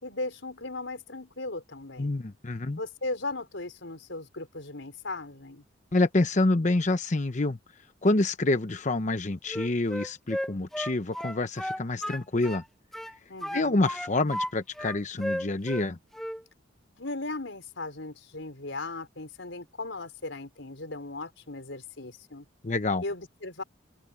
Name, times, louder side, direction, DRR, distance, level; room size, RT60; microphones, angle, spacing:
voice 1, 0.0-2.1 2.8-5.6 13.3-13.8 17.0-22.4 23.0-23.6, left 2 dB, 90° left, 4.3 m, -37 dB
voice 2, 2.0-2.8 5.9-7.6 8.0-12.6 13.5-16.0 22.6-23.0, left 2 dB, 40° left, 0.9 m, -27 dB
Wind instrument woodwind instrument, 9.5-12.6 12.9-14.5 14.8-16.4, equal, ahead, 0.7 m, -34 dB
open air
head